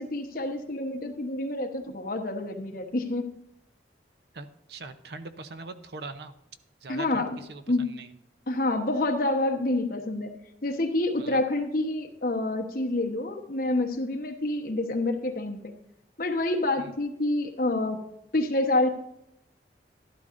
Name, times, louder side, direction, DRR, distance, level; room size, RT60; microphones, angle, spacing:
voice 1, 0.0-3.3 6.9-7.4 7.7-7.9 8.5-10.3 10.6-15.6 16.2-18.0 18.3-18.9, left 2 dB, 50° left, 4 dB, 1.1 m, -27 dB
voice 2, 4.3-6.3 6.8-8.1 11.2-11.4 16.8-16.9, right 3 dB, 60° right, 10 dB, 0.7 m, -42 dB
12.0 x 12.0 x 2.6 m, 0.81 s
head